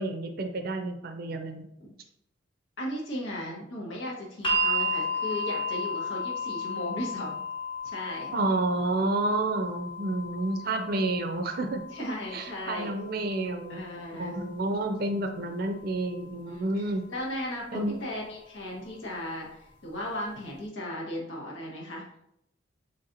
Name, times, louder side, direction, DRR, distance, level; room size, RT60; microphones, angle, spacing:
voice 1, 0.0-1.7 8.3-11.8 12.3-17.1 17.7-18.0, right 2 dB, 50° right, 6 dB, 0.4 m, -30 dB
voice 2, 2.8-7.4 7.8-8.3 11.9-12.9 13.7-14.4 16.5-22.0, left 1 dB, 90° left, -3 dB, 1.2 m, -36 dB
sound 1, 4.4-16.5 17.6-17.7, left 1 dB, 25° left, 0.9 m, -34 dB
4.1 x 3.2 x 2.5 m, 0.78 s
head